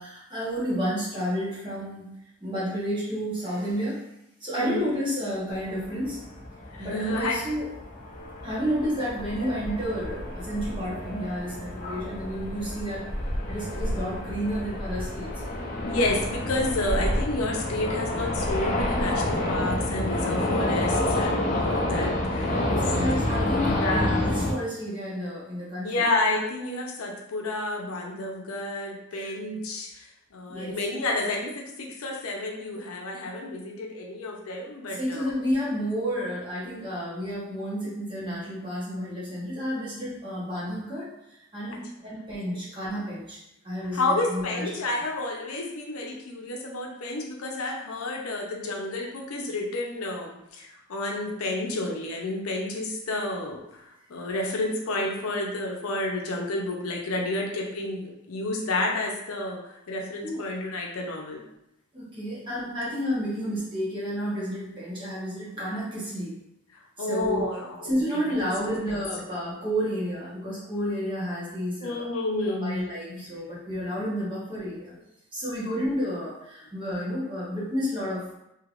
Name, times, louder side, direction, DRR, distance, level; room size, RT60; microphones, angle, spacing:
voice 1, 0.0-2.1 2.4-4.0 4.4-6.2 6.8-7.7 8.4-13.1 13.5-15.4 22.5-26.1 29.1-29.3 30.5-31.0 34.9-41.1 41.5-43.4 43.6-44.7 60.2-60.4 61.9-66.3 67.0-67.5 67.8-72.1 72.4-74.9 75.3-78.4, equal, 25° right, -8 dB, 1.0 m, -31 dB
voice 2, 4.6-4.9 6.7-7.4 15.9-22.5 23.8-24.1 25.8-30.0 30.3-35.3 41.7-41.8 43.9-61.5 67.0-68.0 71.8-73.2 75.6-75.8, left 2 dB, 80° left, -1 dB, 0.6 m, -30 dB
sound 1, 5.5-24.5, left 1 dB, 35° left, 0.5 m, -29 dB
3.2 x 2.8 x 2.4 m, 0.85 s
head